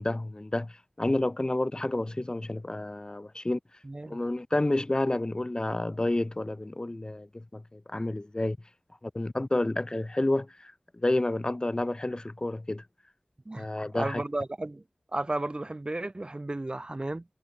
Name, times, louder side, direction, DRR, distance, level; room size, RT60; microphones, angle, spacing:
voice 1, 0.0-3.6 4.1-8.6 9.0-12.8 13.5-14.2, left 2 dB, 30° left, 0.6 m, -30 dB
voice 2, 3.8-4.2 13.5-13.7 13.9-14.8 15.1-17.2, right 2 dB, 35° right, 0.8 m, -33 dB
wide cardioid pair, 60°, 3 cm